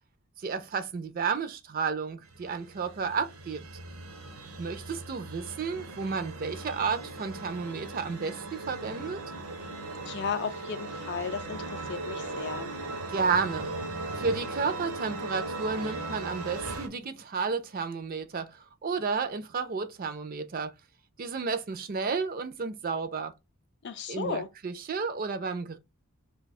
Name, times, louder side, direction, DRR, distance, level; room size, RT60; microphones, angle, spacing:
voice 1, 0.4-3.6 4.6-9.2 13.1-13.7 14.1-20.7 21.2-23.3 24.1-25.8, right 5 dB, 40° right, 0.4 m, -32 dB
sound 1, 2.3-16.9, right 2 dB, 75° right, 0.7 m, -38 dB
voice 2, 10.1-12.7 23.8-24.5, left 6 dB, 50° left, 0.4 m, -35 dB
2.7 x 2.3 x 4.1 m
head